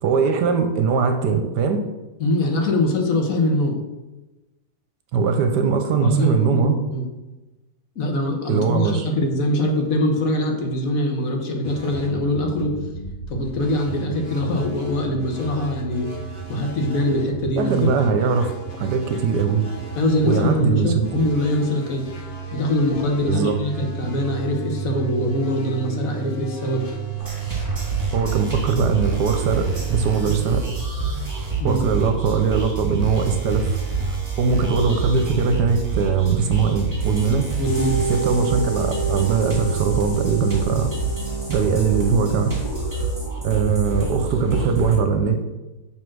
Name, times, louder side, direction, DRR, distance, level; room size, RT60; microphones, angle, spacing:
voice 1, 0.0-1.8 5.1-6.8 8.5-9.1 17.6-19.6 20.2-21.2 23.3-23.6 28.1-30.6 31.6-33.8 34.0-37.5 38.1-40.9 41.5-42.5 43.4-45.4, right 5 dB, 70° right, 7 dB, 1.2 m, -21 dB
voice 2, 2.2-3.7 6.0-6.6 6.9-7.1 8.0-12.7 13.3-16.1 16.5-17.9 19.9-22.1 22.5-26.9 31.6-31.8 37.3-38.1, left 1 dB, 55° left, 3 dB, 1.3 m, -23 dB
sound 1, 11.6-31.2, right 6 dB, 35° left, 1.4 m, -33 dB
sound 2, 27.2-45.0, right 4 dB, 20° right, 1.7 m, -27 dB
sound 3, 37.6-43.3, right 3 dB, 70° left, 1.9 m, -31 dB
7.0 x 3.7 x 6.1 m, 1.1 s
omnidirectional pair, 2.0 m